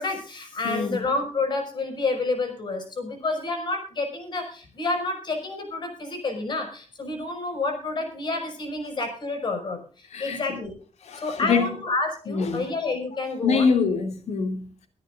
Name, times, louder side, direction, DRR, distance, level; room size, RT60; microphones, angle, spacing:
voice 1, 0.0-10.7 11.2-13.7, left 3 dB, 40° left, 5.9 m, -29 dB
voice 2, 0.6-1.0 10.1-10.6 11.0-11.7 12.3-12.7 13.4-14.9, left 5 dB, 65° left, 2.7 m, -25 dB
24.0 x 13.0 x 2.5 m
wide cardioid pair, 175°, 12 cm